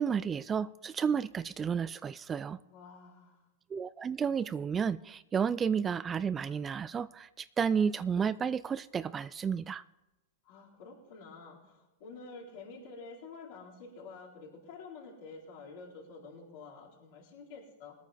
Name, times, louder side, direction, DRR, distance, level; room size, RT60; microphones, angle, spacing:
voice 1, 0.0-2.6 3.7-9.8, right 7 dB, 20° right, 15 dB, 0.3 m, -32 dB
voice 2, 2.7-3.5 10.4-17.9, left 4 dB, 60° left, -7 dB, 4.2 m, -49 dB
21.0 x 9.1 x 3.5 m, 1.1 s
hypercardioid pair, 115°, 0 cm